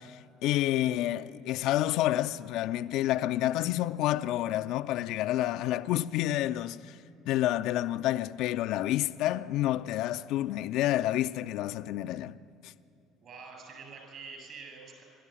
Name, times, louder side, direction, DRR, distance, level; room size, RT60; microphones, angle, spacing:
voice 1, 0.0-7.0 7.3-12.4 12.6-12.7, left 14 dB, 60° left, 0.5 m, -29 dB
voice 2, 13.2-15.0, right 4 dB, 50° right, 7.6 m, -46 dB
27.0 x 12.5 x 9.2 m
figure-of-eight pair, 60°, 0 cm